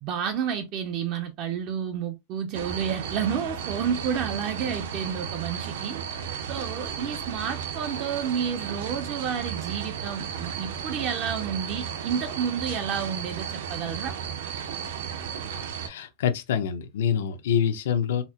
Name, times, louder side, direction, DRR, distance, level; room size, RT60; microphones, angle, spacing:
voice 1, 0.0-6.0 6.5-14.2, right 7 dB, 30° right, 0.4 m, -30 dB
sound 1, 2.5-15.9, right 7 dB, 75° right, 0.7 m, -34 dB
voice 2, 15.8-18.2, left 8 dB, 85° left, 0.6 m, -26 dB
4.1 x 2.1 x 2.8 m
supercardioid pair, 180°, 0 cm